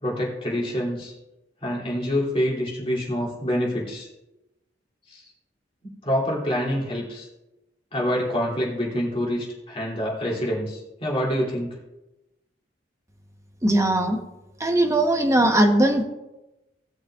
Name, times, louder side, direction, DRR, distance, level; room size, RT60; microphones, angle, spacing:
voice 1, 0.0-1.1 1.6-4.1 5.1-5.2 5.8-7.3 7.9-11.7, equal, 30° left, -4 dB, 3.0 m, -26 dB
voice 2, 13.6-14.2 14.6-16.0, right 1 dB, 15° right, 3 dB, 1.0 m, -19 dB
18.5 x 6.4 x 2.5 m, 0.99 s
head